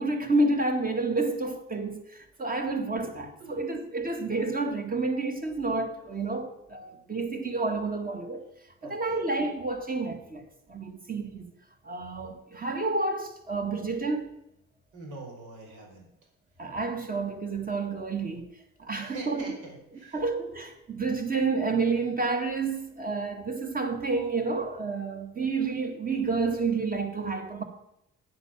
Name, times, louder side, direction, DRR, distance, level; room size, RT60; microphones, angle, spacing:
voice 1, 0.0-8.4 8.8-10.4 10.7-11.5 11.8-14.4 16.6-18.5 18.8-19.5 20.1-27.6, right 3 dB, 30° right, 1.9 m, -29 dB
voice 2, 3.4-3.8 6.9-7.0 8.8-9.2 14.9-16.1 18.9-20.2, right 3 dB, 85° right, 4.4 m, -44 dB
9.3 x 7.9 x 7.4 m
cardioid pair, 90°, 30 cm